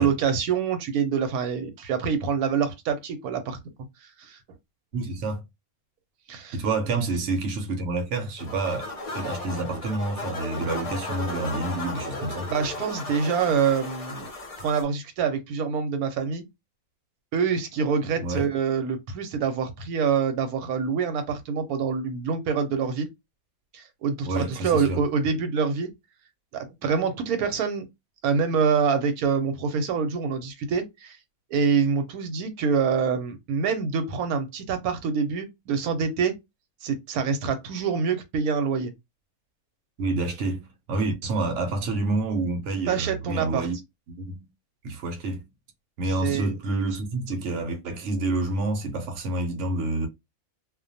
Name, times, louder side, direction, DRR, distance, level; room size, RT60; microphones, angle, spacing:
voice 1, 0.0-3.6 4.2-4.4 6.3-6.6 12.5-14.3 14.6-16.5 17.3-23.1 23.7-25.9 26.5-27.8 28.2-31.2 31.5-36.4 36.8-38.9 42.9-43.7 46.2-46.5, right 6 dB, 90° right, 1.1 m, -26 dB
voice 2, 4.9-5.4 6.5-12.5 18.2-18.5 24.2-25.0 40.0-43.8 44.1-44.5 44.8-45.5 46.0-50.1, right 2 dB, 65° right, 0.9 m, -28 dB
sound 1, 8.4-14.8, left 2 dB, 40° left, 0.5 m, -35 dB
2.4 x 2.2 x 2.6 m
omnidirectional pair, 1.5 m